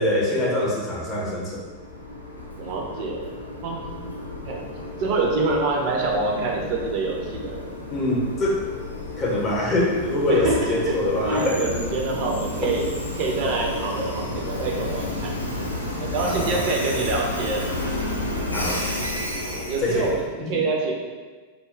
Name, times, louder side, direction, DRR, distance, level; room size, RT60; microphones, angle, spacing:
voice 1, 0.0-1.6 7.9-8.6 9.2-11.6 16.2-16.7 18.5-18.8 19.8-20.1 20.4-20.6, left 1 dB, 30° left, -3 dB, 0.6 m, -24 dB
Train, 1.5-20.2, left 1 dB, 85° left, 0.3 m, -31 dB
voice 2, 2.6-3.2 3.6-3.9 4.4-4.7 5.0-7.5 10.3-11.0 11.2-12.9 13.1-15.3 16.0-17.6 19.5-20.2 20.5-20.9, right 3 dB, 45° right, 0 dB, 0.3 m, -26 dB
2.2 x 2.0 x 3.0 m, 1.4 s
figure-of-eight pair, 90°, 0 cm